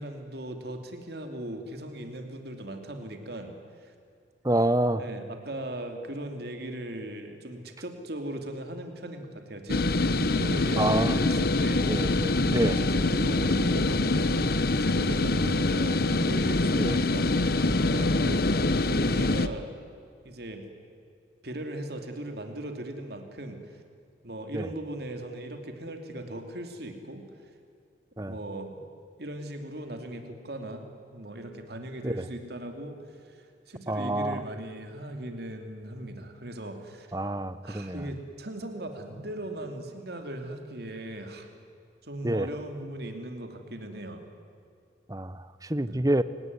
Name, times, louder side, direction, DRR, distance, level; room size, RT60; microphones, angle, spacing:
voice 1, 0.0-3.5 3.8-3.9 4.9-12.2 12.6-17.3 17.8-18.1 18.8-19.8 20.2-20.7 21.4-23.7 24.2-27.3 28.3-28.8 29.2-30.9 31.1-37.2 37.6-41.5 42.0-44.2 45.8-46.0, right 1 dB, 55° right, 5 dB, 2.8 m, -38 dB
voice 2, 4.4-5.0 10.8-11.2 11.9-12.8 15.3-15.5 16.8-17.0 18.3-18.4 24.5-24.7 28.2-28.4 32.0-32.2 33.9-34.4 37.1-38.1 42.2-42.5 45.1-46.2, right 1 dB, 20° right, 14 dB, 0.8 m, -28 dB
sound 1, 9.7-19.5, left 2 dB, 55° left, 1.0 m, -25 dB
29.0 x 18.0 x 9.6 m, 2.4 s
head